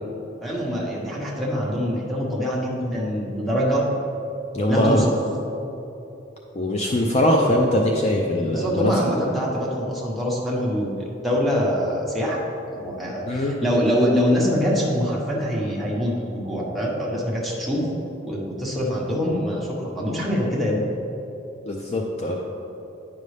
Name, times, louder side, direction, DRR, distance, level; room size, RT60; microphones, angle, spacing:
voice 1, 0.4-3.9 4.7-5.1 8.5-12.4 12.7-17.8 18.2-20.9, equal, ahead, -5 dB, 1.2 m, -24 dB
voice 2, 4.5-5.1 6.5-9.1 13.3-13.5 21.7-22.4, left 1 dB, 35° left, 0 dB, 0.5 m, -21 dB
9.9 x 5.4 x 3.3 m, 2.9 s
head